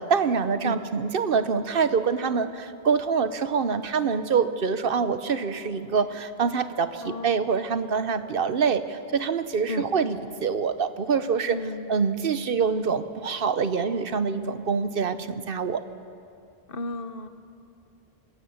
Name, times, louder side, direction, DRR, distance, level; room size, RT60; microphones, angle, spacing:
voice 1, 0.0-11.6 11.9-15.8, right 5 dB, 60° right, 11 dB, 1.0 m, -25 dB
voice 2, 7.0-7.6 9.7-9.9 11.5-11.9 16.7-17.3, left 2 dB, 60° left, 10 dB, 1.1 m, -33 dB
24.5 x 17.0 x 7.1 m, 2.5 s
omnidirectional pair, 1.1 m